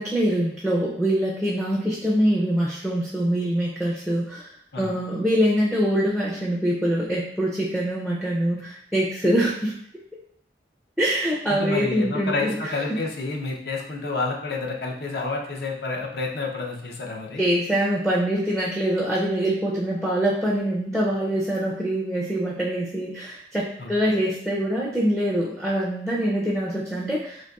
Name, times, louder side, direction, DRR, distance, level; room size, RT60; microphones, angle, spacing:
voice 1, 0.0-9.7 11.0-13.0 17.4-27.5, equal, ahead, -6 dB, 0.4 m, -24 dB
voice 2, 11.5-17.4 23.8-24.2, left 3 dB, 60° left, 0 dB, 0.6 m, -29 dB
4.0 x 2.8 x 2.3 m, 0.68 s
head